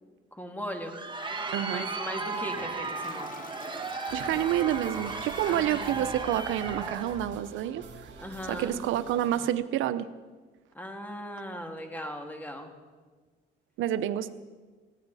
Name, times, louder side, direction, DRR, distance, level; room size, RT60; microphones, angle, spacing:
voice 1, 0.3-1.0 1.7-3.3 5.5-6.0 8.2-8.8 10.7-12.7, equal, 10° left, 3 dB, 2.3 m, -38 dB
Crowd, 0.7-7.2, right 3 dB, 25° right, 1.6 m, -35 dB
voice 2, 1.5-1.9 4.1-7.8 8.5-10.1 13.8-14.3, right 12 dB, 90° right, 13 dB, 0.7 m, -28 dB
Toilet flush, 2.3-6.6, left 4 dB, 45° left, 1.4 m, -46 dB
sound 1, 4.1-9.5, right 4 dB, 70° right, 2.2 m, -47 dB
19.5 x 16.0 x 4.1 m, 1.4 s
cardioid pair, 90°, 20 cm